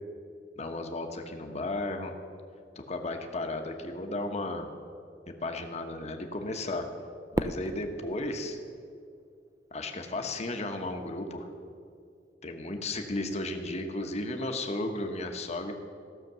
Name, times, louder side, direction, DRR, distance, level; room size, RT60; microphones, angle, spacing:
voice 1, 0.6-2.1 2.7-4.7 5.3-6.9 7.4-8.6 9.7-11.5 12.4-15.7, left 2 dB, 40° left, 5 dB, 0.9 m, -34 dB
Fireworks, 7.3-9.7, right 1 dB, 20° right, 0.4 m, -36 dB
15.0 x 6.6 x 6.7 m, 2.3 s
head